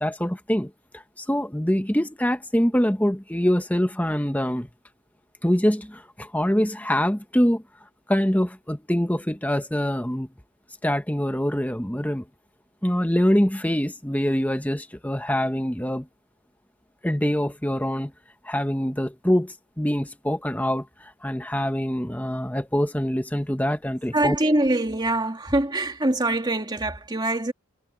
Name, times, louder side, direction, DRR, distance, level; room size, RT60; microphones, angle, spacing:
voice 1, 0.0-4.7 5.4-7.6 8.1-10.3 10.8-12.2 12.8-16.1 17.0-18.1 18.4-24.4, equal, 10° left, 1.2 m, -24 dB
voice 2, 24.1-27.5, right 1 dB, 20° right, 2.4 m, -24 dB
head